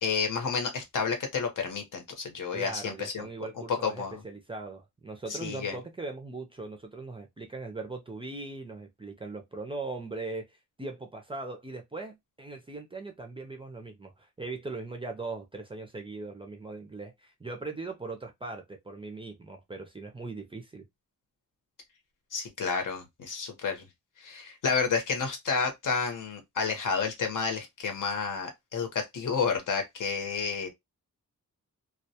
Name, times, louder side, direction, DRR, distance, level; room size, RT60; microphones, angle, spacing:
voice 1, 0.0-3.3 3.7-4.2 5.3-5.8 22.3-23.8 24.2-30.7, left 5 dB, 70° left, 0.9 m, -30 dB
voice 2, 2.5-20.8, right 3 dB, 15° right, 0.3 m, -40 dB
2.1 x 2.1 x 2.7 m
wide cardioid pair, 180°, 32 cm